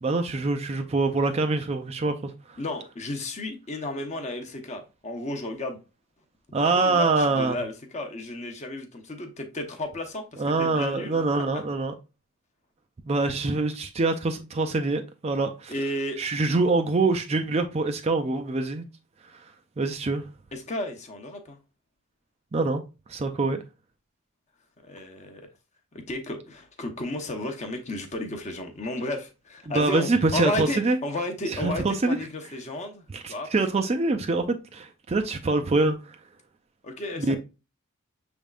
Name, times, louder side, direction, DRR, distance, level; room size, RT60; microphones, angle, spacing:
voice 1, 0.0-2.3 6.5-7.6 10.4-11.9 13.1-15.7 16.2-18.8 19.8-20.2 22.5-22.8 23.1-23.6 29.7-31.0 31.5-32.2 33.1-36.0 37.2-37.4, right 3 dB, 30° right, 0.4 m, -25 dB
voice 2, 2.6-5.8 6.8-11.2 11.5-11.6 15.7-16.2 20.5-21.6 24.8-25.5 25.9-33.0 33.3-33.5 36.8-37.4, left 1 dB, 30° left, 0.8 m, -33 dB
6.3 x 3.4 x 2.4 m
head